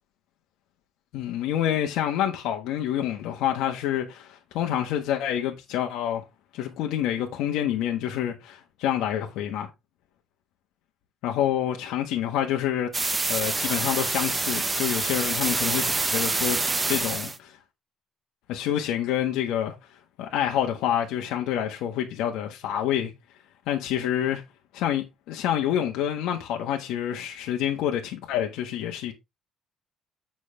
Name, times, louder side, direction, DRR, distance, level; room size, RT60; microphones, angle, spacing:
voice 1, 1.1-6.2 6.5-9.7 11.2-12.9 13.3-17.6 18.5-19.7 20.2-23.1 23.7-24.4 24.7-29.1, left 10 dB, 80° left, 1.5 m, -27 dB
sound 1, 12.9-17.4, right 3 dB, 15° right, 0.6 m, -26 dB
8.9 x 6.1 x 3.5 m
cardioid pair, 170°, 0 cm